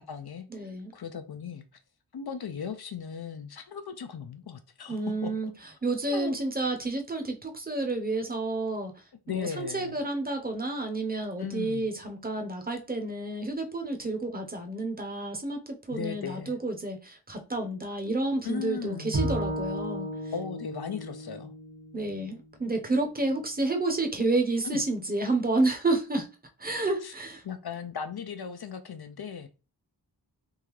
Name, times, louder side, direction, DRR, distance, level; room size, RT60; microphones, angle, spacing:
voice 1, 0.0-1.6 2.1-5.3 6.1-6.4 9.3-10.0 11.4-11.9 15.9-16.6 18.4-19.2 20.3-21.5 24.6-24.8 27.0-27.1 27.4-29.5, left 7 dB, 65° left, 0.5 m, -37 dB
voice 2, 0.5-0.9 4.9-5.5 5.8-8.9 9.3-20.1 21.9-26.3 26.6-27.4, right 2 dB, 20° right, 0.9 m, -30 dB
Bowed string instrument, 19.1-22.4, right 1 dB, 85° right, 1.6 m, -34 dB
3.6 x 2.7 x 3.1 m
wide cardioid pair, 60°, 41 cm